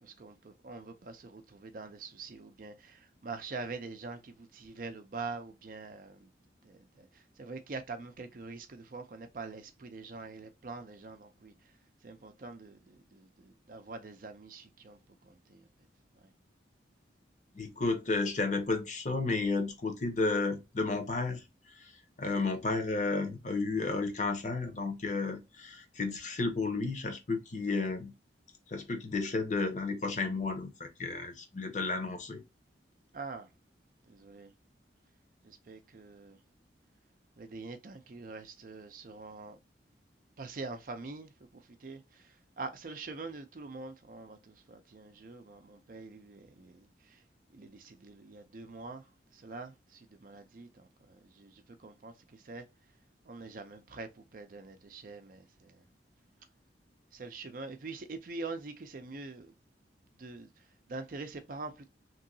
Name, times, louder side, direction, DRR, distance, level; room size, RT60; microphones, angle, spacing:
voice 1, 0.0-6.3 6.6-11.7 12.0-15.7 16.1-16.3 33.1-33.5 34.0-34.5 35.4-36.4 37.4-39.6 40.4-47.2 47.5-52.7 53.2-55.8 57.1-59.5 60.2-61.9, right 3 dB, 50° right, 0.5 m, -45 dB
voice 2, 17.5-21.4 21.7-21.9 22.2-28.1 28.7-32.4, left 3 dB, 40° left, 0.8 m, -32 dB
3.0 x 2.8 x 2.6 m
head